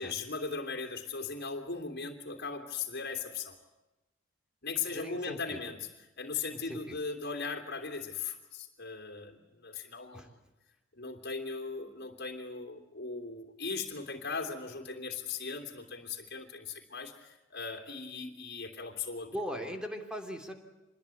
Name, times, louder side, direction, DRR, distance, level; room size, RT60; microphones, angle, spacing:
voice 1, 0.0-3.6 4.6-5.8 6.2-10.3 10.9-19.3, left 4 dB, 50° left, 1 dB, 3.0 m, -38 dB
voice 2, 4.9-5.7 6.5-7.0 10.1-10.3 19.3-20.5, equal, 5° right, 4 dB, 3.0 m, -40 dB
26.0 x 21.0 x 8.5 m, 1.0 s
head